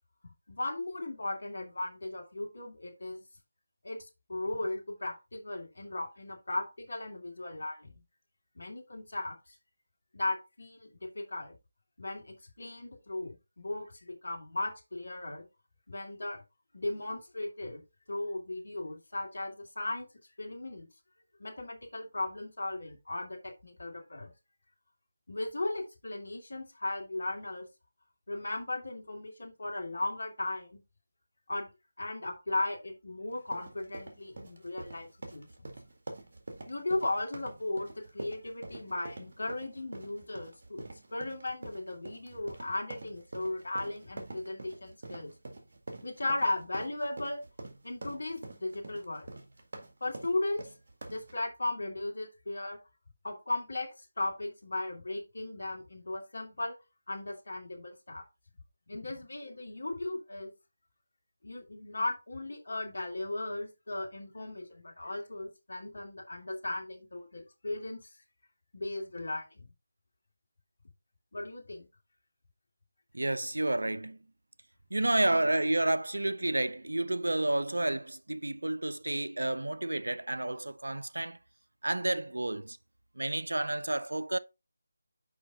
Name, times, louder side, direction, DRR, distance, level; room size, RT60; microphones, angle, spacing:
voice 1, 0.5-3.2 3.8-7.9 8.5-9.4 10.1-11.6 12.0-15.5 15.9-16.4 16.7-17.8 18.1-20.1 20.4-20.9 21.4-24.3 25.3-27.7 28.3-30.8 31.5-31.7 32.0-35.7 36.7-45.3 46.0-47.4 47.8-49.3 50.0-50.7 51.1-52.8 53.2-53.9 54.2-56.7 57.1-58.2 58.9-60.5 61.4-68.1 68.7-69.7 71.3-71.9, left 2 dB, 60° left, 2.5 m, -36 dB
sound 1, 33.3-51.4, right 2 dB, 50° right, 1.8 m, -46 dB
voice 2, 73.1-74.2 74.9-81.4 81.8-82.8 83.2-84.4, right 1 dB, 70° right, 0.5 m, -30 dB
6.1 x 5.0 x 3.8 m
figure-of-eight pair, 160°, 0 cm